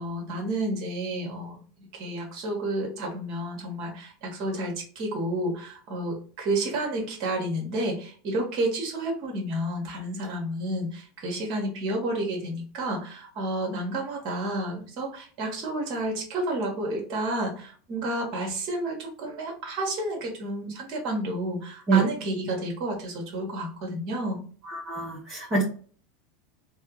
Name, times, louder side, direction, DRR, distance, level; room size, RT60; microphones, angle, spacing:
voice 1, 0.0-24.4, right 1 dB, 55° right, 0 dB, 2.0 m, -30 dB
voice 2, 24.6-25.6, right 4 dB, 30° right, -7 dB, 1.9 m, -25 dB
3.5 x 3.5 x 3.2 m, 0.42 s
hypercardioid pair, 105°, 0 cm